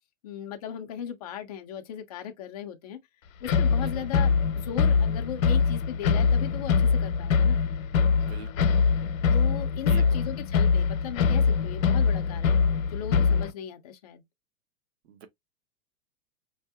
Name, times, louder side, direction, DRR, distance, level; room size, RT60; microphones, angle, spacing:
voice 1, 0.2-3.0 3.4-7.6 9.3-14.2, left 9 dB, 30° left, 0.4 m, -37 dB
sound 1, 3.4-13.5, left 5 dB, 75° left, 0.7 m, -23 dB
voice 2, 8.2-8.8 9.9-10.3 15.0-15.3, right 9 dB, 50° right, 0.7 m, -44 dB
4.8 x 2.7 x 2.3 m
supercardioid pair, 160°, 40 cm